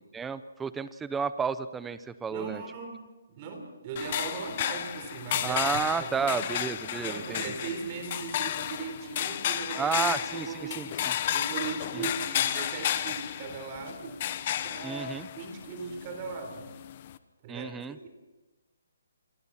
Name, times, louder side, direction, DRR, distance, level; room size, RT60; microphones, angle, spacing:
voice 1, 0.0-2.6 5.4-7.4 9.8-10.5 10.8-10.9 11.9-12.0 14.8-15.3 17.5-18.0, right 5 dB, 5° right, 13 dB, 0.7 m, -31 dB
voice 2, 2.3-3.0 3.3-5.6 6.0-6.5 7.0-10.9 11.3-14.2 14.6-16.7 17.4-18.1, right 5 dB, 25° right, 5 dB, 4.0 m, -38 dB
sound 1, 4.0-17.2, left 11 dB, 35° left, 1.1 m, -33 dB
28.0 x 23.0 x 4.3 m, 1.2 s
hypercardioid pair, 165°, 0 cm